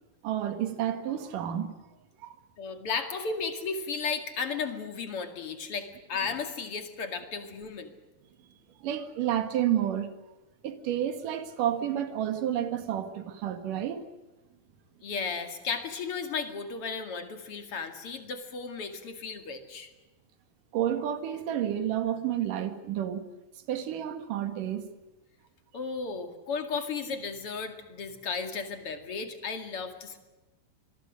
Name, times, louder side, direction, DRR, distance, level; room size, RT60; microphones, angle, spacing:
voice 1, 0.2-1.7 2.2-2.4 8.8-10.1 10.6-14.0 20.7-23.3 23.7-24.9, right 10 dB, 65° right, 3.2 m, -30 dB
voice 2, 2.6-7.9 15.0-19.9 25.7-30.2, left 5 dB, 45° left, 2.8 m, -34 dB
26.0 x 22.5 x 6.4 m
omnidirectional pair, 4.2 m